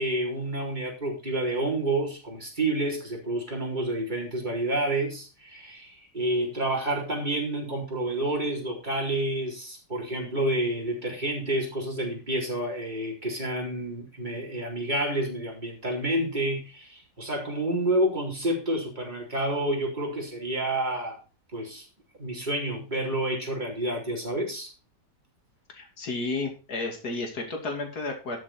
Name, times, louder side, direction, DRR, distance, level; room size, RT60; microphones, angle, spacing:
voice 1, 0.0-21.2 21.5-21.8 22.2-24.7, right 1 dB, 25° right, -2 dB, 4.4 m, -29 dB
voice 2, 25.7-28.4, left 3 dB, 60° left, 3 dB, 3.2 m, -32 dB
12.5 x 7.4 x 4.4 m, 0.32 s
omnidirectional pair, 1.8 m